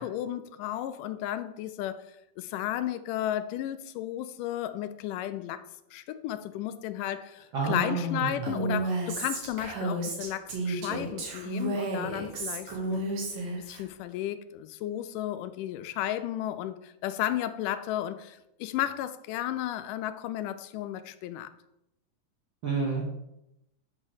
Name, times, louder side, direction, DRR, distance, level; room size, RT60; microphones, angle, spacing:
voice 1, 0.0-5.6 5.9-13.0 13.6-21.5, left 12 dB, 85° left, 11 dB, 2.1 m, -33 dB
voice 2, 7.5-8.5 22.6-23.1, right 3 dB, 60° right, -3 dB, 1.3 m, -29 dB
Female speech woman speaking, 8.4-13.8, right 2 dB, 90° right, 3.3 m, -32 dB
8.1 x 3.2 x 6.4 m, 0.86 s
omnidirectional pair, 3.8 m